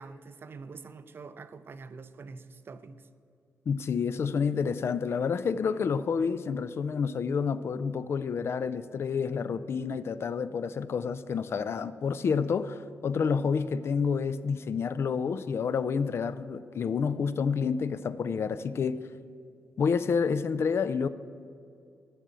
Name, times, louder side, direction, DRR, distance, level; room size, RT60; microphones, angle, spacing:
voice 1, 0.0-3.0, right 4 dB, 45° right, 0.5 m, -45 dB
voice 2, 3.7-19.0 19.8-21.1, left 6 dB, 55° left, 0.4 m, -29 dB
12.5 x 6.2 x 8.2 m
cardioid pair, 105°, 5 cm